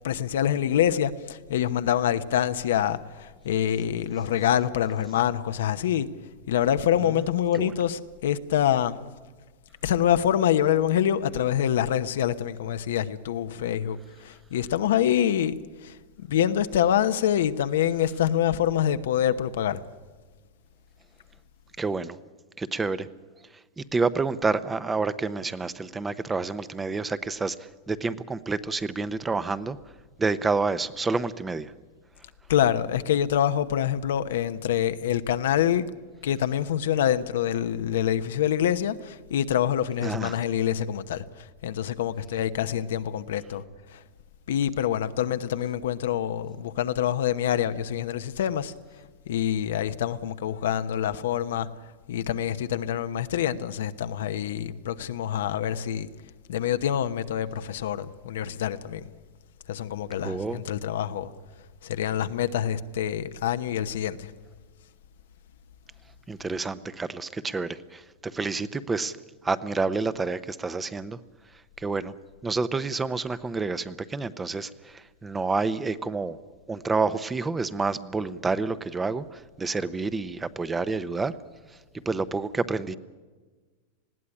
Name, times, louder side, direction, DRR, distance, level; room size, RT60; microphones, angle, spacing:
voice 1, 0.0-6.1 6.5-9.0 9.8-16.0 16.2-19.8 32.5-35.8 36.2-41.2 41.6-43.6 43.9-44.0 44.5-48.7 49.3-51.7 52.1-56.1 56.5-59.0 59.7-61.3 61.8-64.3, left 10 dB, 80° left, 1.0 m, -26 dB
voice 2, 21.8-22.2 22.6-23.1 23.8-29.8 30.2-31.7 40.0-40.4 60.2-60.6 66.3-69.2 69.4-71.2 71.8-72.1 72.4-76.4 76.7-81.3 82.1-82.9, right 4 dB, 15° right, 0.8 m, -29 dB
20.0 x 15.5 x 9.9 m
supercardioid pair, 130°, 0 cm